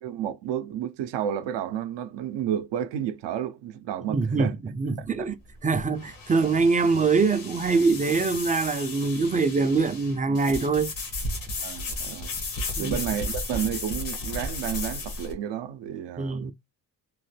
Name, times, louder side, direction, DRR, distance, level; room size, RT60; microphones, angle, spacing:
voice 1, 0.0-4.5 5.0-5.3 11.6-12.3 12.8-16.5, right 10 dB, 75° right, 0.5 m, -31 dB
voice 2, 4.1-5.4 5.6-10.9 12.8-13.0 16.2-16.5, right 4 dB, 20° right, 0.3 m, -24 dB
sound 1, 5.0-15.3, left 2 dB, 85° left, 1.2 m, -34 dB
3.1 x 2.1 x 3.1 m
cardioid pair, 85°, 43 cm